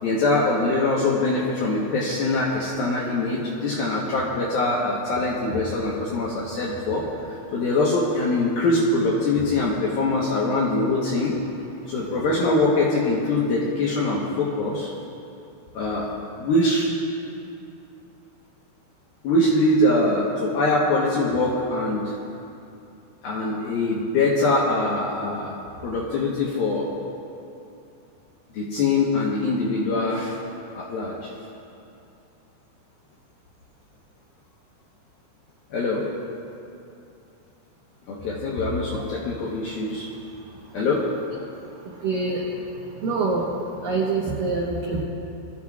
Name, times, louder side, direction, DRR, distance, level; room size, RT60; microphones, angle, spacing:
voice 1, 0.0-11.4 11.9-14.9 15.7-16.1 16.4-16.9 19.2-22.1 23.2-25.6 25.8-26.9 28.5-30.3 30.7-31.3 35.7-36.0 38.1-40.1 40.7-41.1, left 2 dB, 75° left, -5 dB, 2.3 m, -23 dB
voice 2, 42.0-42.4 43.0-43.5 43.8-45.0, right 4 dB, 85° right, -3 dB, 1.9 m, -24 dB
23.0 x 14.0 x 2.4 m, 2.6 s
omnidirectional pair, 5.7 m